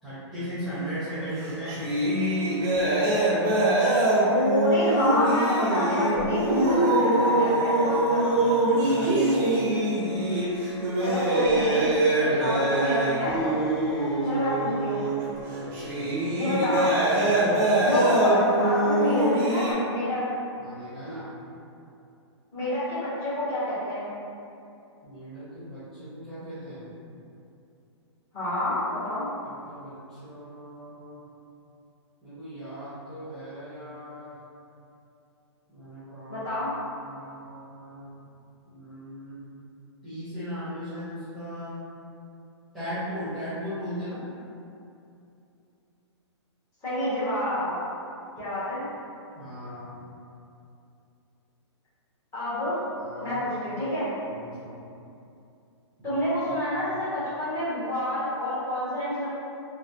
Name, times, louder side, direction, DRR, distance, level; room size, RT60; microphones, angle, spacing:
voice 1, 0.0-1.8 6.6-9.5 14.0-14.4 15.4-16.2 17.3-17.7 20.6-21.3 25.0-26.8 29.4-31.2 32.2-34.4 35.7-36.4 37.0-38.1 38.6-39.5 40.0-41.8 42.7-44.2 49.3-50.0 53.0-53.4 54.2-54.7 56.0-56.2, equal, ahead, -17 dB, 1.1 m, -38 dB
sound 1, 0.7-0.9 1.2-19.7, right 1 dB, 35° right, 0.7 m, -24 dB
voice 2, 4.2-8.3 11.0-11.9 12.2-13.6 14.2-15.0 16.4-17.0 17.7-20.3 22.5-24.0 28.3-29.2 36.3-36.7 46.8-47.7 48.4-48.9 52.3-52.8 53.2-54.1 56.0-59.3, left 1 dB, 20° left, -14 dB, 1.3 m, -28 dB
3.2 x 2.3 x 2.7 m, 2.6 s
hypercardioid pair, 150°, 15 cm